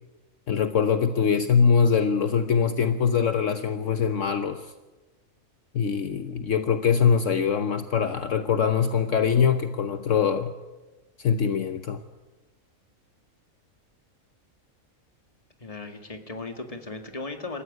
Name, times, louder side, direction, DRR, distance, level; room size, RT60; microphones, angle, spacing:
voice 1, 0.5-4.7 5.7-10.5 11.2-12.0, left 6 dB, 65° left, 9 dB, 1.2 m, -23 dB
voice 2, 15.6-17.6, left 3 dB, 25° left, 6 dB, 2.1 m, -36 dB
27.0 x 14.5 x 9.5 m, 1.2 s
omnidirectional pair, 1.5 m